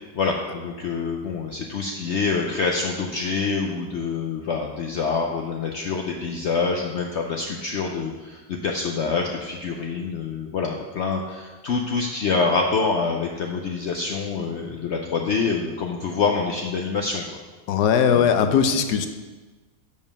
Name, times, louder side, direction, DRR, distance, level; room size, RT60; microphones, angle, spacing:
voice 1, 0.1-17.2 18.1-18.2, left 4 dB, 60° left, 1 dB, 0.7 m, -26 dB
voice 2, 17.7-19.1, left 7 dB, 85° left, 8 dB, 1.2 m, -19 dB
7.0 x 5.2 x 5.3 m, 1.3 s
omnidirectional pair, 1.7 m